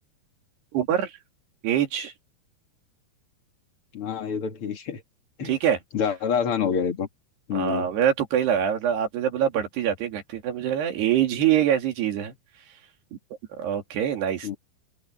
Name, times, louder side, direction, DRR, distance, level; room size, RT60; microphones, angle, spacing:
voice 1, 0.7-1.1 1.6-2.1 5.4-5.8 7.5-12.3 13.6-14.6, right 10 dB, 70° right, 4.6 m, -24 dB
voice 2, 3.9-5.0 5.4-5.6 5.9-7.1 7.5-7.9 14.4-14.6, left 7 dB, 40° left, 2.2 m, -27 dB
omnidirectional pair, 4.9 m